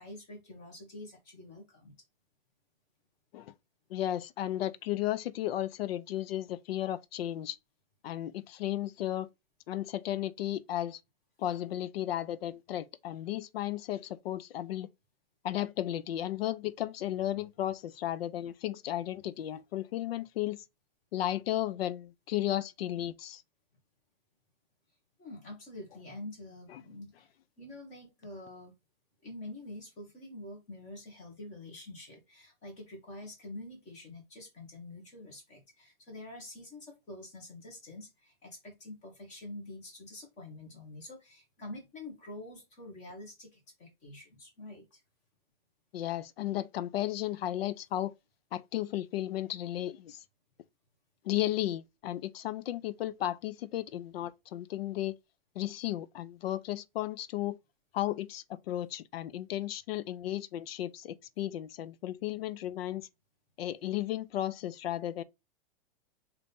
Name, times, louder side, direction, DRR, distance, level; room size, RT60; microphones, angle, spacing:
voice 1, 0.0-1.9 25.2-27.3 27.6-28.7 29.2-45.0, left 1 dB, 25° left, 1.7 m, -47 dB
voice 2, 3.9-7.6 8.0-9.3 9.7-11.0 11.4-14.9 15.4-20.6 21.1-23.4 45.9-48.1 48.5-50.2 51.2-55.1 55.6-57.6 57.9-63.1 63.6-65.2, left 13 dB, 85° left, 0.6 m, -34 dB
4.0 x 2.9 x 3.5 m
supercardioid pair, 170°, 29 cm